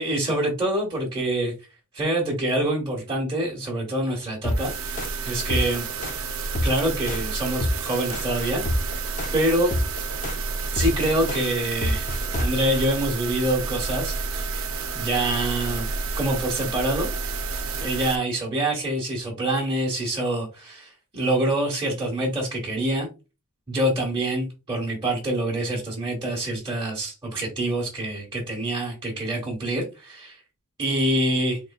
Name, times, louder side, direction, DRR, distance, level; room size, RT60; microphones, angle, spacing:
voice 1, 0.0-1.5 1.9-5.8 6.6-8.9 9.3-9.7 10.7-14.7 14.9-15.9 16.2-17.1 17.8-23.1 23.7-30.4 30.8-31.6, right 1 dB, 20° right, -3 dB, 1.2 m, -26 dB
sound 1, 4.4-12.8, left 1 dB, 35° left, 0.7 m, -27 dB
sound 2, 4.4-18.2, right 4 dB, 65° right, 0.6 m, -30 dB
4.2 x 3.2 x 2.4 m, 0.28 s
head